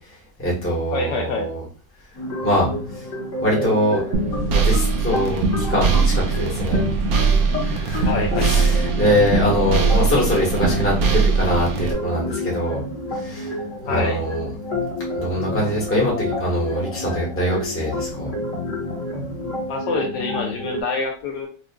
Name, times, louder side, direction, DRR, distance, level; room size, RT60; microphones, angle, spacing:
voice 1, 0.4-1.6 2.4-2.7 3.4-4.0 4.6-6.8 7.6-8.1 8.4-12.8 13.1-13.6 13.9-14.5 15.1-18.3, equal, 10° left, -5 dB, 1.0 m, -23 dB
voice 2, 0.9-1.5 8.0-8.7 9.5-9.6 13.9-14.2 19.7-21.5, left 3 dB, 75° left, 2 dB, 1.3 m, -26 dB
sound 1, 2.1-20.8, left 1 dB, 45° left, 1.4 m, -29 dB
sound 2, 4.1-11.9, right 5 dB, 65° right, 1.0 m, -20 dB
4.9 x 2.5 x 2.3 m, 0.37 s
omnidirectional pair, 2.0 m